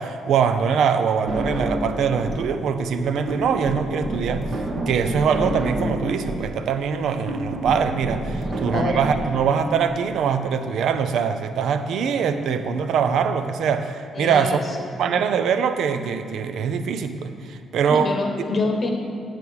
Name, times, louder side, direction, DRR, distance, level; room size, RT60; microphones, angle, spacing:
voice 1, 0.0-4.5 4.9-14.6 15.0-18.1, right 6 dB, 75° right, 9 dB, 0.5 m, -23 dB
sound 1, 1.3-2.5 2.8-9.3, right 1 dB, 40° right, 1.0 m, -28 dB
sound 2, 2.3-4.0 5.8-7.0 7.6-7.7 9.2-10.9 11.3-11.4 12.5-13.8 16.0-17.2, equal, 5° left, 0.7 m, -41 dB
voice 2, 8.4-9.0 14.1-14.6 17.8-18.9, left 3 dB, 35° left, 3 dB, 1.0 m, -26 dB
8.9 x 4.7 x 7.0 m, 2.3 s
cardioid pair, 125°, 0 cm